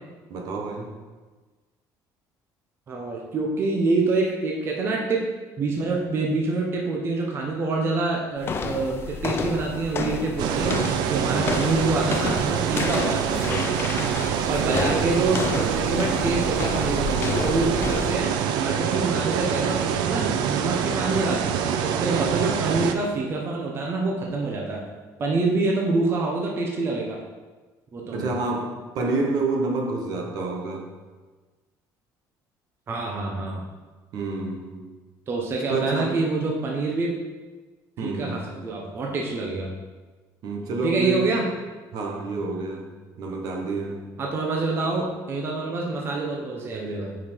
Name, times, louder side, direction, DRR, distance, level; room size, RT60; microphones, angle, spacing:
voice 1, 0.3-0.9 11.3-11.6 14.3-15.1 28.1-30.9 34.1-34.8 35.7-36.1 38.0-38.5 40.4-41.4 41.9-44.2, right 3 dB, 60° right, 1 dB, 1.3 m, -29 dB
voice 2, 2.9-5.2 5.6-13.6 14.5-24.8 25.2-27.2 27.9-28.3 32.9-33.6 35.3-37.1 38.0-39.7 40.8-41.5 44.2-47.2, right 3 dB, 35° right, -1 dB, 1.0 m, -26 dB
Go down an old woodn spiral staircase (slow), 8.4-18.3, left 4 dB, 35° left, 0.6 m, -31 dB
sound 1, 10.4-22.9, right 8 dB, 80° right, 0.6 m, -25 dB
9.2 x 5.1 x 4.5 m, 1.3 s
cardioid pair, 155°, 7 cm